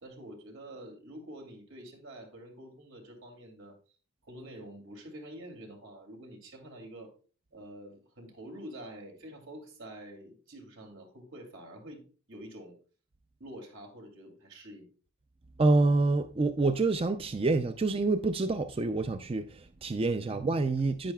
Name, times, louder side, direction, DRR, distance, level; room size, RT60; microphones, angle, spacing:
voice 1, 0.0-3.8 4.2-7.1 7.5-12.0 12.3-12.8 13.4-14.9 20.2-20.4 20.8-20.9, right 1 dB, 85° right, 2.6 m, -47 dB
voice 2, 15.6-21.1, right 3 dB, 30° right, 0.4 m, -27 dB
10.0 x 9.1 x 2.3 m
head